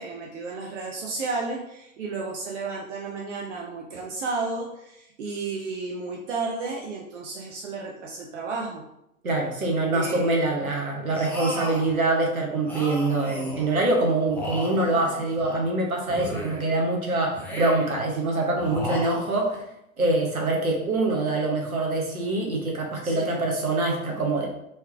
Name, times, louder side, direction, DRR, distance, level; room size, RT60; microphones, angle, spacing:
voice 1, 0.0-8.8 9.9-10.4 23.0-23.4, right 3 dB, 55° right, -1 dB, 0.8 m, -32 dB
voice 2, 9.2-19.6 20.0-24.5, right 2 dB, 75° right, 0 dB, 1.3 m, -24 dB
sound 1, 11.1-11.9 12.6-13.8 14.3-15.6 16.1-16.8 17.3-18.0 18.6-19.6, equal, 5° left, 0.5 m, -35 dB
4.5 x 3.2 x 3.3 m, 0.82 s
figure-of-eight pair, 95°, 43 cm